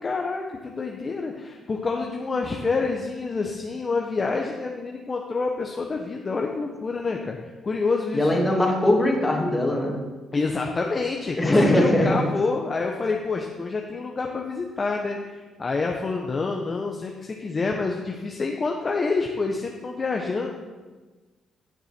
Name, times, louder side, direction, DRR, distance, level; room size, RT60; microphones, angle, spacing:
voice 1, 0.0-7.4 7.6-8.3 10.3-20.5, left 4 dB, 35° left, 1 dB, 1.0 m, -27 dB
voice 2, 8.1-10.0 11.4-12.2, left 1 dB, 20° left, 0 dB, 2.5 m, -20 dB
16.0 x 6.6 x 4.4 m, 1.3 s
cardioid pair, 90°, 0 cm